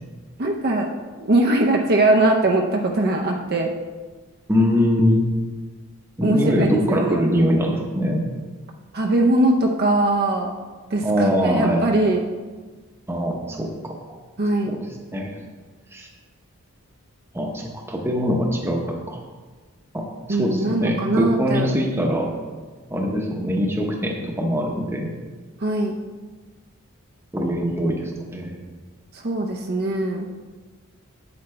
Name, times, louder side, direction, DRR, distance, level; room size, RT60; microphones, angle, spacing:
voice 1, 0.4-0.9 1.2-3.7 6.2-7.2 8.9-10.5 10.9-12.2 14.4-14.8 20.3-21.7 25.6-26.0 29.1-30.3, right 2 dB, 45° right, 1 dB, 0.6 m, -21 dB
voice 2, 4.5-5.3 6.2-8.3 11.0-11.8 13.1-14.2 14.6-14.8 15.1-15.4 15.9-16.1 17.3-19.2 19.9-22.3 22.9-25.1 27.3-28.6, equal, 10° right, 1 dB, 0.9 m, -22 dB
8.1 x 8.0 x 3.3 m, 1.3 s
head